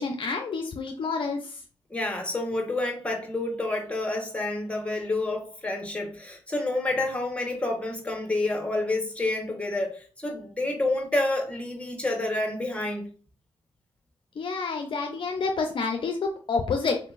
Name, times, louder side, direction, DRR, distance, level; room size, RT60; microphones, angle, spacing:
voice 1, 0.0-1.6 14.4-17.0, left 4 dB, 55° left, 0.5 m, -28 dB
voice 2, 1.9-13.1, left 2 dB, 10° left, 1.1 m, -29 dB
3.8 x 2.8 x 2.4 m
cardioid pair, 60°, 10 cm